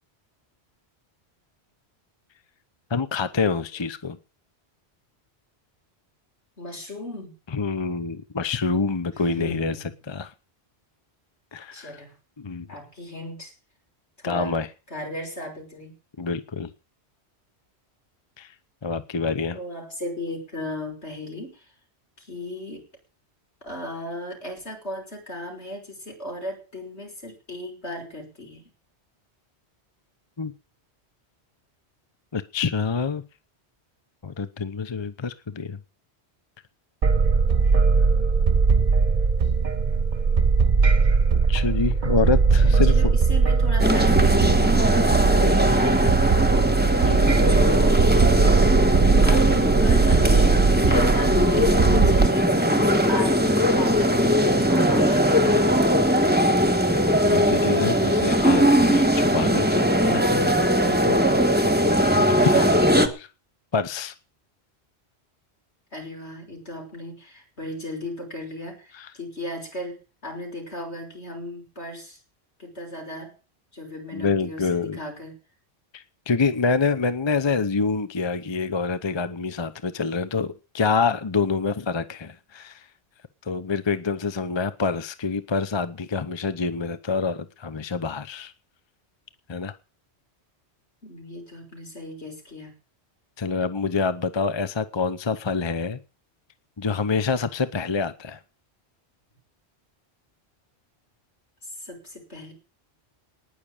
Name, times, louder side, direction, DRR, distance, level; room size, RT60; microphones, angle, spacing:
voice 1, 2.9-4.2 7.5-9.8 10.1-10.3 11.5-12.0 12.4-12.7 14.2-14.7 16.2-16.7 18.4-18.5 18.8-19.6 30.4-30.5 32.3-33.2 34.2-35.8 41.5-43.1 45.4-45.6 47.0-47.3 57.2-61.3 62.4-62.7 63.0-63.3 63.7-64.1 69.0-69.1 74.1-75.0 75.9-82.8 83.4-88.5 89.5-89.7 93.4-96.0 96.8-98.4, left 4 dB, 30° left, 0.8 m, -26 dB
voice 2, 6.6-7.4 9.1-9.9 11.7-12.1 12.7-13.5 14.2-14.5 14.9-15.9 19.5-21.7 22.2-22.8 23.6-28.7 42.6-46.8 47.6-48.0 49.3-55.8 62.3-62.9 65.9-72.2 72.6-73.3 73.7-75.3 91.0-92.7 101.6-102.5, left 1 dB, 75° left, 6.0 m, -36 dB
sound 1, 37.0-52.3, right 4 dB, 45° right, 1.0 m, -20 dB
sound 2, 43.8-63.1, equal, 10° right, 1.4 m, -20 dB
19.0 x 6.5 x 8.8 m
omnidirectional pair, 1.1 m